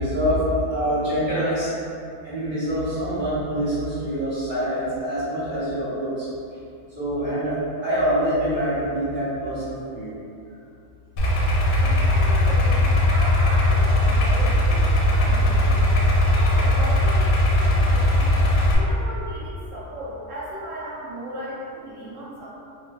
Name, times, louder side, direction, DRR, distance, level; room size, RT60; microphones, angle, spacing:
voice 1, 0.0-1.7 2.2-6.3 6.9-10.1, equal, 50° right, -14 dB, 1.5 m, -25 dB
Idling, 11.2-18.7, left 1 dB, 80° left, 1.1 m, -19 dB
voice 2, 11.8-15.9 16.3-18.4 18.7-22.5, right 1 dB, 70° right, -6 dB, 1.0 m, -36 dB
3.8 x 2.3 x 2.3 m, 2.6 s
omnidirectional pair, 1.4 m